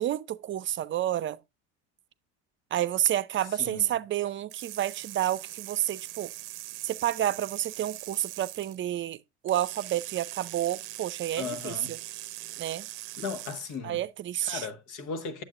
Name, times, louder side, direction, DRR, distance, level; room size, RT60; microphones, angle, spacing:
voice 1, 0.0-1.4 2.7-6.3 6.8-9.2 9.4-12.0 12.6-12.9 13.8-14.7, right 12 dB, 40° right, 0.5 m, -30 dB
voice 2, 3.6-3.9 11.4-12.0 13.2-14.0 14.4-15.4, left 5 dB, 70° left, 1.5 m, -36 dB
sound 1, 4.5-8.8 9.5-13.8, right 17 dB, 85° right, 0.6 m, -41 dB
8.8 x 7.3 x 2.4 m
supercardioid pair, 100°, 32 cm